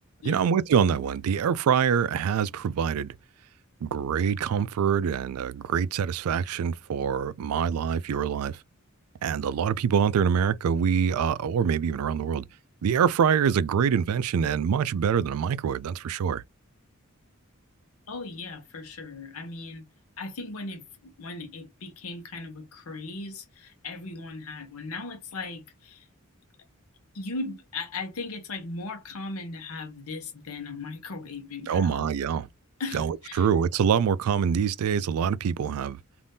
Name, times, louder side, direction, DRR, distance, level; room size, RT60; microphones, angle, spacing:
voice 1, 0.2-3.1 3.8-8.6 9.2-12.4 12.8-16.4 31.7-32.5 32.9-36.0, right 7 dB, 85° right, 0.3 m, -25 dB
voice 2, 18.1-19.8 20.2-26.1 27.1-32.1 32.8-33.5, left 3 dB, 80° left, 0.8 m, -38 dB
2.6 x 2.5 x 3.5 m
head